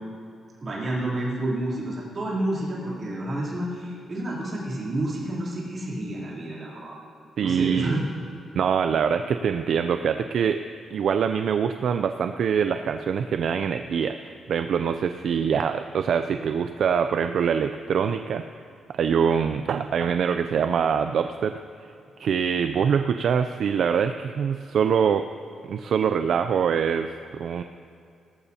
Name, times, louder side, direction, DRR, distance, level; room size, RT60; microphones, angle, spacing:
voice 1, 0.6-7.0 7.4-8.0, right 1 dB, 30° right, -7 dB, 3.1 m, -29 dB
voice 2, 7.4-7.9 8.6-10.6 10.9-18.4 18.9-21.5 21.8-21.9 22.2-25.2 25.6-27.6, right 7 dB, 55° right, 8 dB, 0.3 m, -24 dB
18.5 x 14.0 x 2.8 m, 2.4 s
wide cardioid pair, 170°, 0 cm